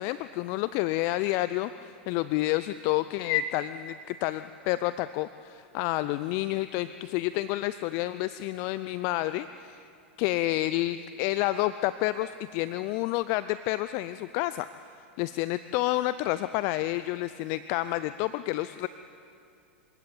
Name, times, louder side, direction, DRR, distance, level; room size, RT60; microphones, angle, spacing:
voice 1, 0.0-9.9 10.2-14.7 15.2-18.9, left 16 dB, 50° left, 14 dB, 0.6 m, -29 dB
26.5 x 16.5 x 8.5 m, 2.5 s
hypercardioid pair, 95°, 6 cm